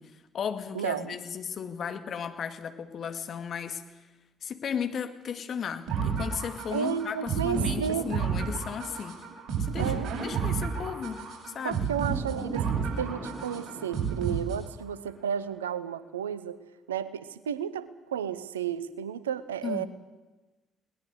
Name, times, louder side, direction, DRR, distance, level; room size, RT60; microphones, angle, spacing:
voice 1, 0.0-4.1 4.4-9.2 9.6-11.9 19.6-19.9, left 7 dB, 55° left, 8 dB, 2.2 m, -35 dB
voice 2, 0.7-1.2 6.7-8.1 9.8-10.1 11.6-12.7 13.0-16.6 16.9-19.8, right 8 dB, 85° right, 17 dB, 0.9 m, -32 dB
sound 1, 5.9-14.9, right 6 dB, 60° right, 7.7 m, -31 dB
21.5 x 19.5 x 8.0 m, 1.1 s
hypercardioid pair, 45°, 0 cm